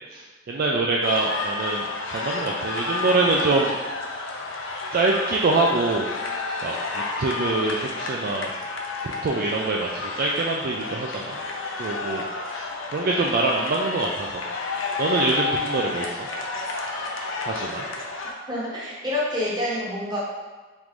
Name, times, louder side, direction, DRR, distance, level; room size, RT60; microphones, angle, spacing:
voice 1, 0.1-3.7 4.9-6.0 6.6-8.5 9.2-11.4 11.8-12.2 12.5-12.6 12.9-14.4 15.0-16.3 17.4-17.8, right 3 dB, 50° right, -2 dB, 0.3 m, -24 dB
sound 1, 1.0-18.3, left 3 dB, 70° left, 0.5 m, -31 dB
voice 2, 18.5-20.2, left 1 dB, 20° right, -7 dB, 1.2 m, -27 dB
3.6 x 2.5 x 4.6 m, 1.3 s
head